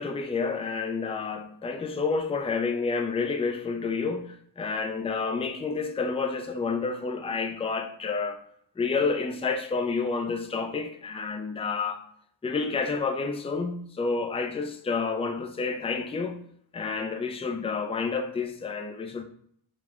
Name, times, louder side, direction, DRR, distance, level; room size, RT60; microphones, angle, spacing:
voice 1, 0.0-8.4 8.8-12.0 12.4-16.4 16.7-19.2, left 4 dB, 15° left, 0.3 m, -29 dB
6.0 x 2.1 x 2.4 m
wide cardioid pair, 45°, 45 cm